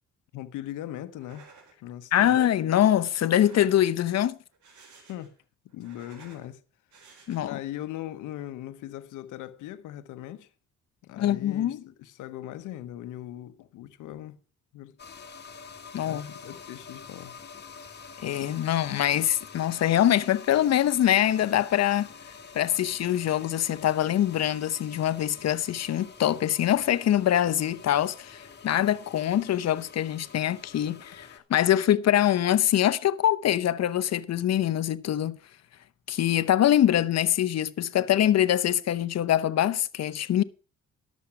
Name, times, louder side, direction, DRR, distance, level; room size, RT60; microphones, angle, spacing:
voice 1, 0.3-1.5 1.8-2.4 5.1-5.3 5.7-6.6 7.4-10.5 11.0-14.4 14.7-15.0 16.0-17.4, left 13 dB, 90° left, 0.9 m, -39 dB
sound 1, 1.1-1.7 2.1-2.6 3.3-4.1 4.5-5.4 5.7-6.5 6.9-7.7, right 4 dB, 75° right, 3.9 m, -54 dB
voice 2, 2.1-4.4 7.3-7.6 11.2-11.8 15.9-16.3 18.2-22.1 22.5-35.4 36.1-40.4, left 11 dB, 60° left, 0.8 m, -24 dB
sound 2, 15.0-31.4, left 5 dB, 35° left, 1.8 m, -47 dB
11.5 x 7.3 x 5.7 m
cardioid pair, 90°, 30 cm